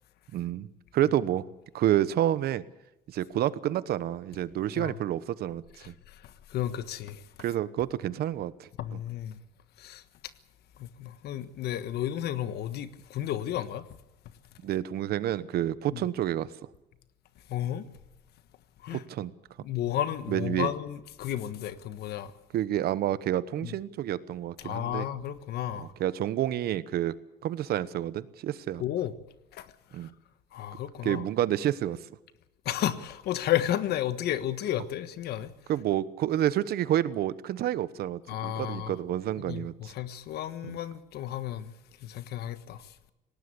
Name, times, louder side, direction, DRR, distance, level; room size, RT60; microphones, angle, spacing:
voice 1, 0.3-1.5 1.7-2.6 3.1-5.9 7.4-8.7 14.6-16.5 18.9-19.3 20.3-20.7 22.5-25.0 25.8-27.1 27.4-28.8 29.9-30.1 31.0-32.0 35.7-39.9 40.7-40.8, right 12 dB, 65° right, 1.1 m, -29 dB
voice 2, 5.8-7.2 8.8-9.4 9.8-10.0 10.8-13.8 15.9-16.0 17.5-17.9 18.8-19.0 19.6-22.3 23.6-23.8 24.6-25.9 28.8-29.1 29.5-30.1 30.5-31.2 32.6-35.5 38.3-39.0 39.4-41.7 42.0-42.9, left 12 dB, 75° left, 1.4 m, -33 dB
19.0 x 18.0 x 8.4 m
cardioid pair, 110°, 17 cm